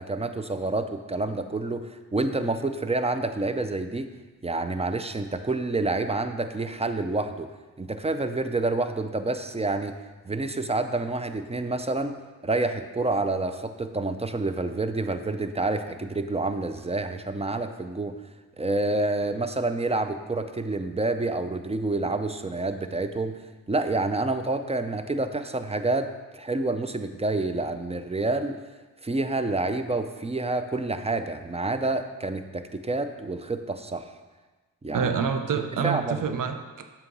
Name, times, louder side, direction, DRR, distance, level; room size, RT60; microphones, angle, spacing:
voice 1, 0.0-4.1 4.4-7.5 7.8-10.0 10.2-12.2 12.4-18.1 18.6-23.4 23.7-28.6 29.0-34.1 34.8-35.1 35.5-36.2, right 2 dB, 15° right, 8 dB, 0.5 m, -28 dB
voice 2, 34.9-36.9, right 6 dB, 55° right, 7 dB, 0.7 m, -27 dB
7.5 x 2.9 x 6.1 m, 1.3 s
supercardioid pair, 45°, 39 cm